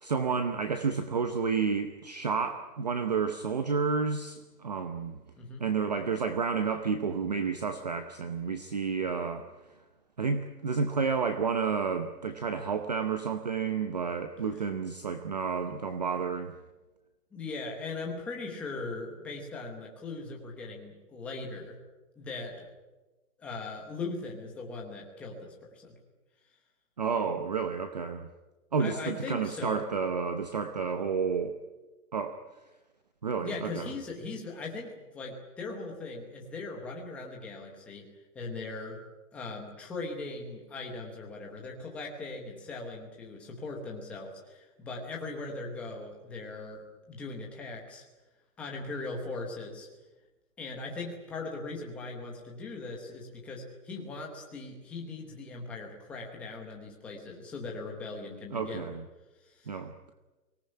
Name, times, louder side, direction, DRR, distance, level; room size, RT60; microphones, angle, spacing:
voice 1, 0.0-5.2 5.6-9.5 10.2-16.5 27.0-28.3 28.7-31.5 32.1-32.4 33.2-33.8 58.5-59.0 59.7-59.9, right 5 dB, 25° right, 8 dB, 0.8 m, -30 dB
voice 2, 17.3-21.8 22.2-22.7 23.4-26.0 28.8-29.8 33.4-38.1 38.3-39.0 39.3-48.0 48.6-49.9 50.6-58.8 59.5-59.8, left 3 dB, 5° left, -1 dB, 1.0 m, -39 dB
24.0 x 18.5 x 9.7 m, 1.1 s
hypercardioid pair, 170°, 47 cm